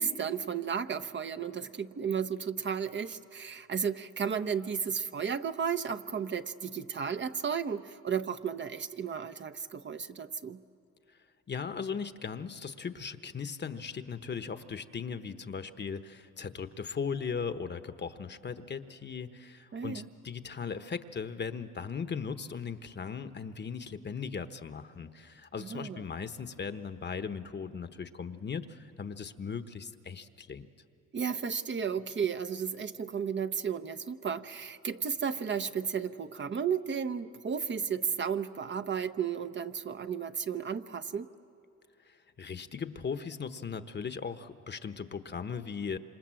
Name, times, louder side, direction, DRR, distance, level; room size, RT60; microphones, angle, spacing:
voice 1, 0.0-10.6 19.7-20.1 25.6-26.0 31.1-41.3, right 7 dB, 40° right, 8 dB, 0.8 m, -33 dB
voice 2, 11.5-30.7 42.1-46.0, left 6 dB, 35° left, 10 dB, 1.1 m, -38 dB
27.0 x 26.5 x 7.6 m, 2.6 s
cardioid pair, 90°, 30 cm